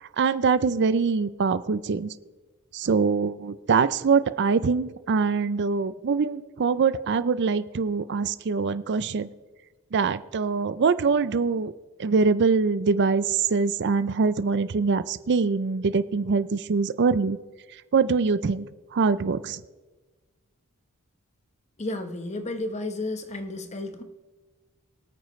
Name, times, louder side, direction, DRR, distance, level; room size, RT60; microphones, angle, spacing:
voice 1, 0.0-2.1 2.7-9.3 9.9-11.7 12.0-17.4 17.7-18.7 18.9-19.6, right 5 dB, 55° right, 15 dB, 0.5 m, -24 dB
voice 2, 21.8-24.0, left 2 dB, 30° left, 8 dB, 1.0 m, -32 dB
24.5 x 9.1 x 3.2 m, 1.2 s
head